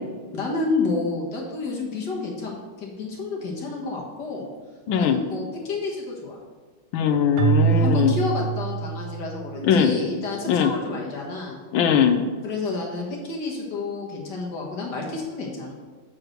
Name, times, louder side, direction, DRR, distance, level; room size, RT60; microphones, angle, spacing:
voice 1, 0.3-4.5 5.0-6.4 7.6-11.6 12.4-15.7, left 3 dB, 55° left, -2 dB, 1.9 m, -30 dB
voice 2, 4.9-5.2 6.9-8.1 9.6-9.9 10.5-10.7 11.7-12.2, left 7 dB, 75° left, 7 dB, 1.5 m, -20 dB
Keyboard (musical), 7.4-9.6, right 7 dB, 85° right, 1.5 m, -24 dB
7.6 x 4.8 x 6.4 m, 1.4 s
omnidirectional pair, 2.3 m